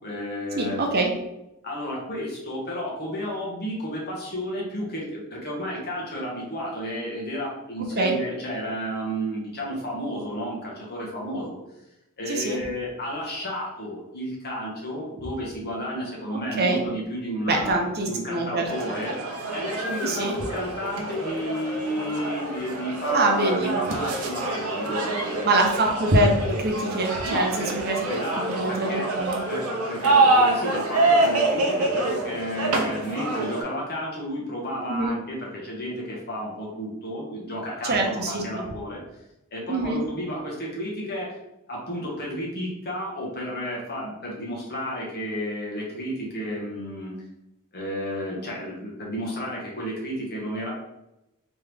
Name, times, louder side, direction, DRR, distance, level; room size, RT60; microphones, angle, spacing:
voice 1, 0.0-0.8 1.6-11.6 12.2-17.8 18.0-19.2 19.5-25.6 27.2-27.8 28.1-29.1 29.5-29.6 29.9-39.0 39.5-41.4 41.7-47.1 47.7-50.7, equal, 50° left, -3 dB, 1.3 m, -32 dB
voice 2, 0.6-1.1 8.0-8.1 12.3-12.6 16.3-16.8 17.5-18.7 20.0-20.4 23.1-23.7 25.4-28.0 28.6-29.4 34.9-35.1 37.8-38.6 39.7-40.0, right 2 dB, 45° right, 1 dB, 0.8 m, -24 dB
sound 1, 18.6-33.6, right 2 dB, 80° right, 0.7 m, -26 dB
3.5 x 3.0 x 3.4 m, 0.88 s
head